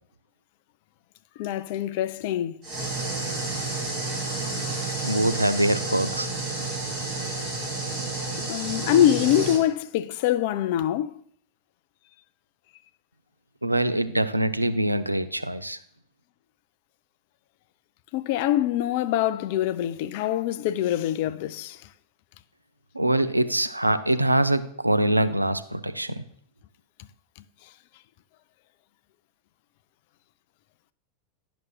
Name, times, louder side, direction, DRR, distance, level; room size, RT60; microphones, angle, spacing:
voice 1, 1.4-2.6 8.5-11.1 18.1-21.8, left 11 dB, 50° left, 0.3 m, -24 dB
sound 1, 2.6-9.6, right 3 dB, 35° right, 2.6 m, -30 dB
voice 2, 5.0-6.3 13.6-15.8 22.9-26.2, right 1 dB, 85° right, 0.4 m, -24 dB
10.5 x 6.0 x 2.4 m
figure-of-eight pair, 90°, 0 cm